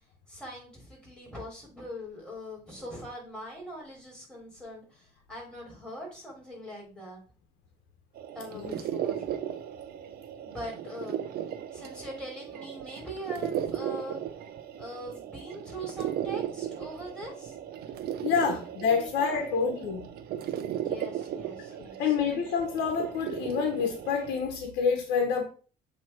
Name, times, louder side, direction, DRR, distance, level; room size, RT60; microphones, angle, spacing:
voice 1, 0.3-7.2 8.3-9.4 10.4-11.2 11.7-14.2 14.8-17.5 18.9-19.6 20.8-22.1, equal, 5° left, 3.4 m, -42 dB
sound 1, 8.2-24.4, right 10 dB, 65° right, 0.7 m, -36 dB
voice 2, 18.2-20.1 22.0-25.5, left 6 dB, 80° left, 1.1 m, -27 dB
7.4 x 3.1 x 4.4 m
cardioid pair, 110°, 17 cm